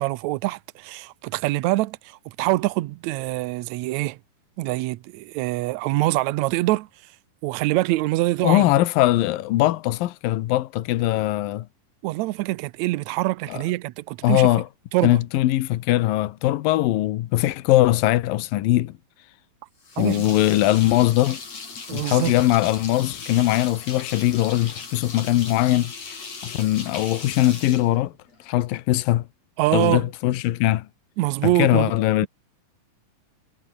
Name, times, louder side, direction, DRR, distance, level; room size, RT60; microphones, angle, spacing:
voice 1, 0.0-4.2 4.6-6.9 7.4-8.8 12.0-14.5 14.9-15.2 20.0-20.3 21.9-22.3 29.6-30.1 31.2-31.9, right 18 dB, 80° right, 1.6 m, -24 dB
voice 2, 8.4-11.7 13.5-13.6 14.2-14.7 15.0-18.9 20.0-21.4 21.9-26.2 26.4-28.1 28.4-29.3 29.7-30.9 31.4-32.3, left 15 dB, 80° left, 2.8 m, -21 dB
sound 1, 19.8-28.6, left 4 dB, 50° left, 5.9 m, -38 dB
omnidirectional pair, 4.0 m